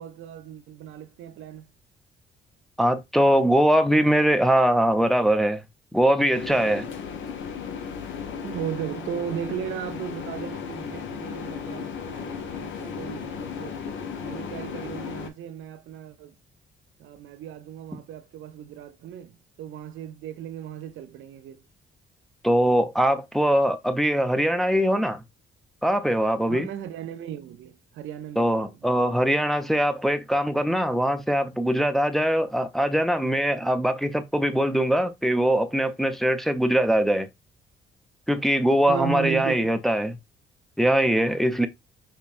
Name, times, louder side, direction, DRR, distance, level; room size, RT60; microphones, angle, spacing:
voice 1, 0.0-1.7 8.4-13.8 14.2-16.4 17.0-21.6 26.5-28.9 38.9-39.7, right 9 dB, 75° right, 0.5 m, -36 dB
voice 2, 2.8-5.6 5.9-6.9 22.4-25.2 25.8-26.7 28.4-37.3 38.3-40.2 40.8-41.7, equal, ahead, 0.5 m, -22 dB
sound 1, 6.3-15.3, left 6 dB, 75° left, 0.7 m, -35 dB
5.5 x 2.2 x 2.5 m
cardioid pair, 90°, 20 cm